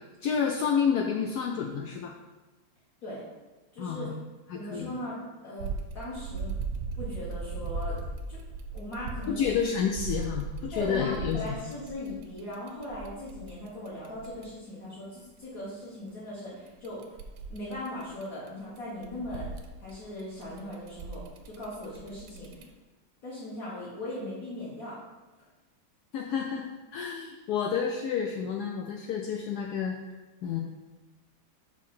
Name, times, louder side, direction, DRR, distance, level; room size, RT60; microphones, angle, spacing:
voice 1, 0.2-2.2 3.8-4.1 4.5-4.9 9.3-11.5 26.1-30.6, left 7 dB, 80° left, 1 dB, 0.9 m, -30 dB
voice 2, 3.7-4.1 4.5-6.5 7.0-8.0 8.3-8.4 8.7-9.5 10.7-17.0 17.5-19.5 19.8-22.6 23.2-25.0, left 1 dB, 45° left, -9 dB, 1.8 m, -39 dB
sound 1, 5.6-14.4 16.7-18.5 18.8-22.6, right 3 dB, 70° right, 1.0 m, -38 dB
5.7 x 4.5 x 4.3 m, 1.2 s
omnidirectional pair, 2.2 m